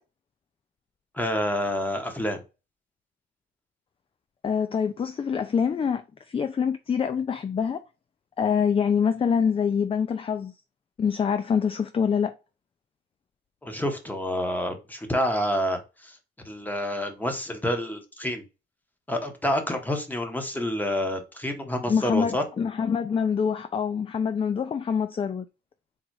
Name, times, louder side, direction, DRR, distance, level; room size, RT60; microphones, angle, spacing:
voice 1, 1.1-2.4 13.6-16.2 16.4-18.4 19.1-22.4, equal, 10° left, 1.2 m, -28 dB
voice 2, 4.4-7.8 8.4-10.5 11.0-12.3 21.9-25.5, left 6 dB, 30° left, 0.4 m, -25 dB
3.9 x 2.4 x 4.7 m
cardioid pair, 90°, 20 cm